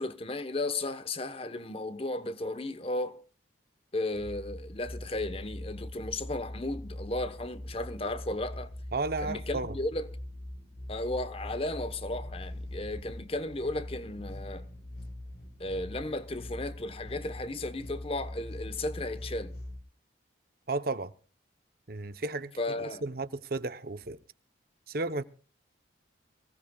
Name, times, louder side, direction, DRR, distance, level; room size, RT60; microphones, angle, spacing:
voice 1, 0.0-3.2 3.9-8.7 9.2-10.1 10.9-14.7 15.6-19.5 22.6-23.0, left 2 dB, 30° left, 1.0 m, -34 dB
sound 1, 4.1-19.8, left 1 dB, 50° left, 3.0 m, -42 dB
voice 2, 8.9-9.8 20.7-21.1 21.9-22.5 23.0-24.2 24.9-25.2, right 3 dB, 50° right, 0.8 m, -33 dB
24.5 x 16.5 x 2.3 m
head